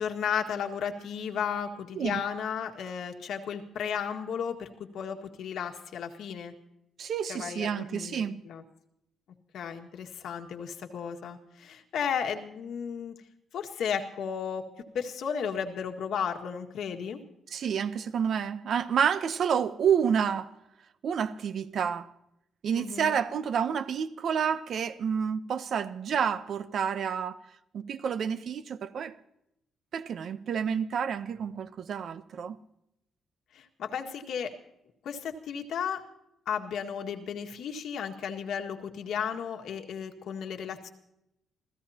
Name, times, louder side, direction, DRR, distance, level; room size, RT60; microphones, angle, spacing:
voice 1, 0.0-6.5 7.3-8.6 9.5-13.2 13.5-14.7 14.9-17.2 22.8-23.1 33.5-34.5 35.0-36.0 36.5-40.9, left 7 dB, 70° left, 1.8 m, -34 dB
voice 2, 7.0-8.4 17.5-20.5 21.0-22.1 22.6-27.4 27.7-29.2 29.9-32.6, right 7 dB, 55° right, 0.8 m, -29 dB
27.5 x 16.0 x 2.9 m
cardioid pair, 150°, 0 cm